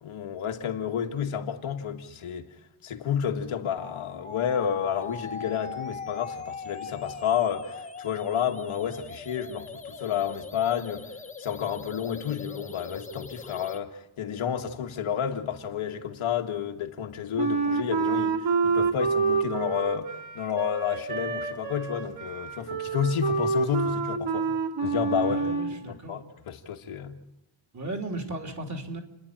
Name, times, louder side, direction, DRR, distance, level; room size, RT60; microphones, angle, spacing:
voice 1, 0.0-2.5 2.8-11.1 11.4-24.6 24.8-25.4 25.9-27.2, left 8 dB, 90° left, 2.0 m, -30 dB
sound 1, 3.8-13.8, left 4 dB, 15° left, 1.1 m, -41 dB
Wind instrument woodwind instrument, 17.4-25.8, right 5 dB, 65° right, 2.0 m, -28 dB
voice 2, 25.2-26.2 27.7-29.0, right 2 dB, 35° right, 3.1 m, -36 dB
29.5 x 10.5 x 8.9 m
wide cardioid pair, 150°, 48 cm